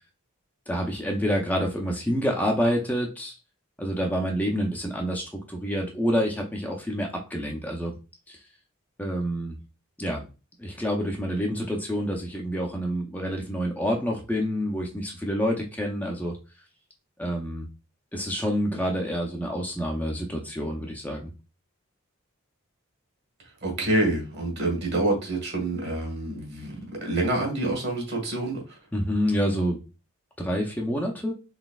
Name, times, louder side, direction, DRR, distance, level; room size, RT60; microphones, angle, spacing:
voice 1, 0.7-3.3 3.8-7.9 8.3-8.4 9.0-9.6 10.0-10.2 10.6-16.4 17.2-17.7 18.1-21.3 28.9-29.8 30.4-31.3, equal, 10° left, 0 dB, 0.5 m, -28 dB
voice 2, 23.6-26.8 27.0-28.8, right 2 dB, 50° right, 1 dB, 1.5 m, -27 dB
4.0 x 3.4 x 2.3 m, 0.31 s
head